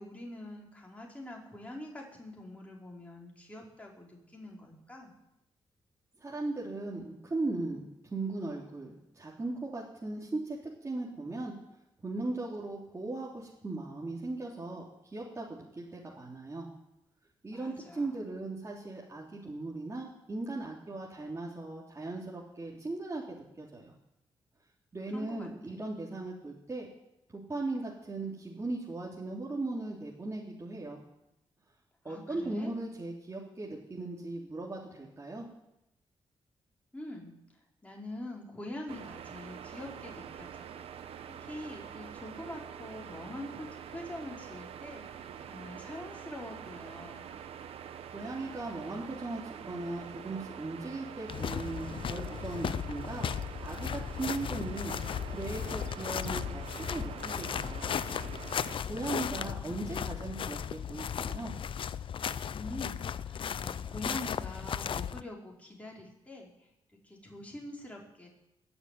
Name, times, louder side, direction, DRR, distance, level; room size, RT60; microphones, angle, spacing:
voice 1, 0.0-5.1 17.5-18.3 25.1-25.8 32.0-32.7 36.9-40.7 41.4-47.4 59.1-59.8 62.5-66.7 67.0-68.3, left 1 dB, 15° left, -2 dB, 5.3 m, -45 dB
voice 2, 6.2-11.5 12.0-14.8 15.1-16.7 17.4-23.9 24.9-26.9 27.3-31.0 32.0-35.5 48.1-55.0 55.3-57.9 58.8-61.5, right 2 dB, 30° right, -4 dB, 3.3 m, -38 dB
sound 1, 38.9-58.8, right 8 dB, 80° right, 1.1 m, -45 dB
sound 2, 51.3-65.2, left 8 dB, 60° left, 0.6 m, -36 dB
21.0 x 7.1 x 9.6 m, 0.87 s
cardioid pair, 80°, 10 cm